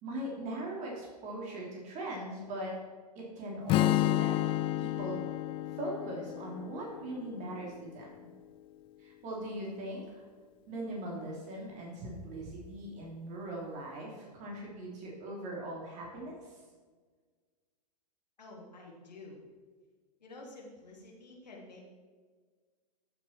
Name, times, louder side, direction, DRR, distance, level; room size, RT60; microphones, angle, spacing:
voice 1, 0.0-2.8 3.1-5.2 5.7-8.3 9.0-10.2 10.7-16.6, right 1 dB, 35° right, -2 dB, 3.3 m, -40 dB
Strum, 3.7-7.8, left 15 dB, 25° left, 0.4 m, -31 dB
voice 2, 18.4-19.4 20.2-21.8, left 2 dB, 90° left, -2 dB, 3.3 m, -50 dB
14.0 x 7.1 x 4.5 m, 1.5 s
hypercardioid pair, 115°, 21 cm